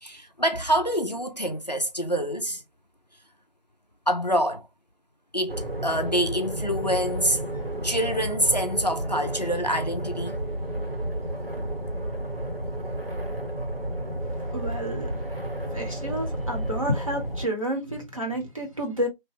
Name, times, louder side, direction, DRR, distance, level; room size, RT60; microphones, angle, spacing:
voice 1, 0.0-2.6 4.1-4.7 5.3-7.4 7.8-10.4, equal, 45° left, 0.5 m, -26 dB
sound 1, 5.5-17.5, right 1 dB, 85° right, 1.7 m, -31 dB
voice 2, 14.5-15.1 15.7-19.1, equal, 35° right, 0.9 m, -30 dB
2.9 x 2.2 x 3.0 m
figure-of-eight pair, 175°, 29 cm